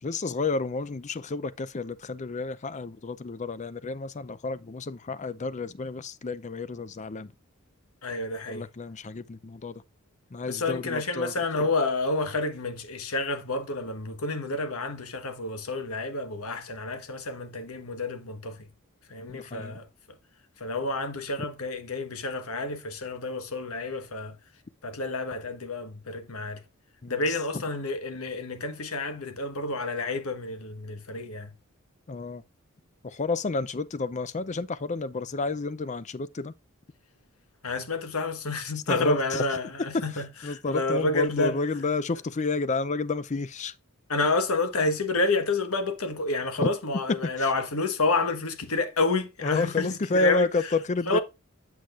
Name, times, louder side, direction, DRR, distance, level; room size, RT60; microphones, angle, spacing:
voice 1, 0.0-7.3 8.5-9.7 10.3-11.3 11.6-11.7 19.3-19.8 27.0-27.6 32.1-32.4 33.0-36.5 38.9-39.4 39.8-40.0 40.4-43.7 46.6-46.7 49.4-51.2, left 3 dB, 35° left, 0.5 m, -30 dB
voice 2, 8.0-8.7 10.5-18.7 19.1-19.9 20.6-24.4 24.8-26.6 27.1-31.5 37.6-41.6 44.1-50.5 51.1-51.2, left 3 dB, 80° left, 1.3 m, -29 dB
8.5 x 6.0 x 2.5 m
head